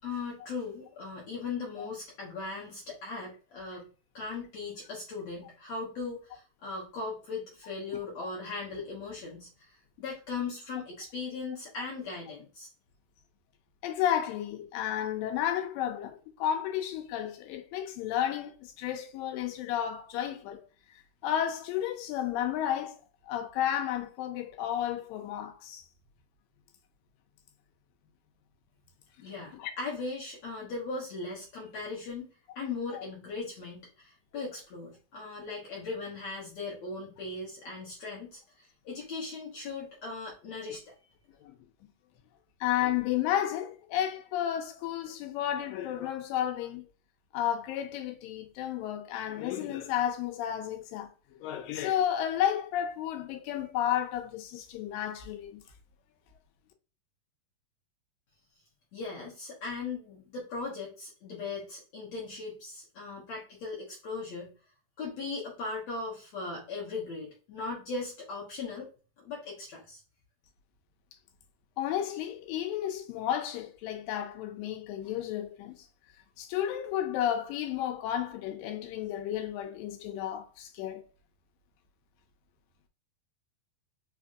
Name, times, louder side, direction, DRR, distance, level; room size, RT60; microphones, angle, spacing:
voice 1, 0.0-3.9 4.1-12.7 29.2-40.9 58.9-64.5 65.0-68.9 69.2-70.0, left 4 dB, 65° left, 1.8 m, -38 dB
voice 2, 13.8-20.6 21.2-23.0 23.3-25.8 29.5-29.7 41.4-41.6 42.6-46.9 47.3-55.6 71.8-75.8 76.4-81.0, left 10 dB, 85° left, 2.4 m, -32 dB
5.2 x 2.6 x 2.4 m
omnidirectional pair, 4.0 m